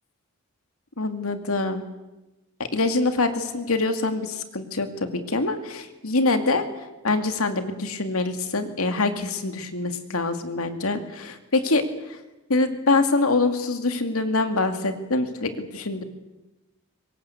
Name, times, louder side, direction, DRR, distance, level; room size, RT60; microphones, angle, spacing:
voice 1, 1.0-1.8 2.7-6.7 7.0-11.8 12.5-16.0, left 3 dB, 70° left, 8 dB, 2.3 m, -24 dB
24.0 x 20.5 x 8.3 m, 1.0 s
head